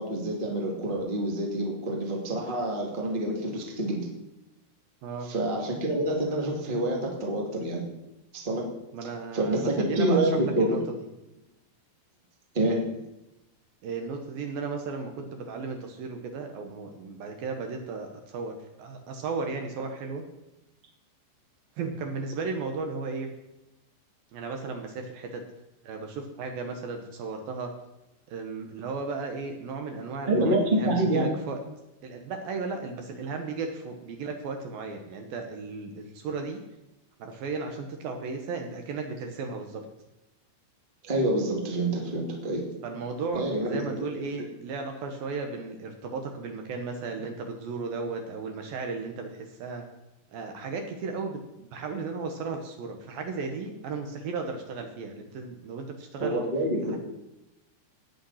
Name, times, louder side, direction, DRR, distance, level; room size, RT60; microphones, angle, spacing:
voice 1, 0.0-4.1 5.2-7.8 8.3-8.6 9.0-10.8 12.5-12.8 30.3-30.6 30.8-31.3 41.0-42.7 43.3-44.0 56.2-57.0, right 1 dB, 40° right, -1 dB, 0.6 m, -27 dB
voice 2, 8.9-10.8 13.8-20.2 21.8-23.3 24.3-25.4 25.8-27.7 28.3-31.6 32.0-36.6 37.2-39.8 42.8-49.8 50.3-56.4 56.9-57.0, right 4 dB, 75° right, 4 dB, 2.1 m, -35 dB
19.0 x 6.7 x 5.7 m, 0.94 s
omnidirectional pair, 5.8 m